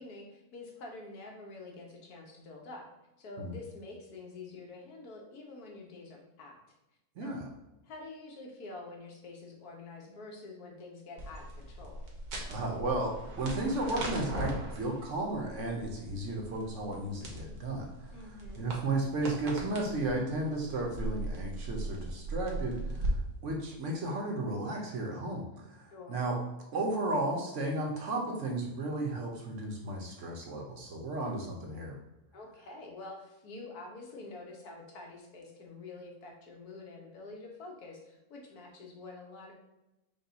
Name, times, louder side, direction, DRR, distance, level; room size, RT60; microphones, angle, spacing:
voice 1, 0.0-2.9 3.2-6.7 7.2-7.4 7.8-12.1 18.1-18.7 25.9-26.2 32.3-39.5, left 3 dB, 75° left, 0 dB, 1.4 m, -47 dB
voice 2, 7.2-7.5 12.5-18.1 18.6-23.2 23.4-26.4 26.7-31.9, right 2 dB, 60° right, 0 dB, 1.0 m, -34 dB
sound 1, 11.2-23.1, right 2 dB, 80° right, 1.5 m, -40 dB
5.2 x 2.3 x 3.9 m, 0.96 s
omnidirectional pair, 1.6 m